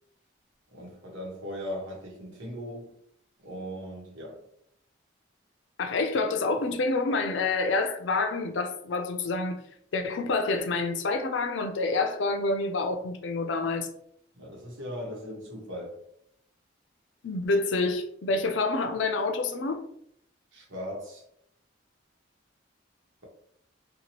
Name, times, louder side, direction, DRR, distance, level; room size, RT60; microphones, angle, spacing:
voice 1, 0.7-2.9 3.4-4.4 14.4-16.0 20.5-21.2, equal, 90° right, 1.0 m, -38 dB
voice 2, 5.8-9.6 9.9-13.9 17.2-19.8, left 3 dB, 75° left, 0.4 m, -27 dB
2.8 x 2.2 x 2.9 m
head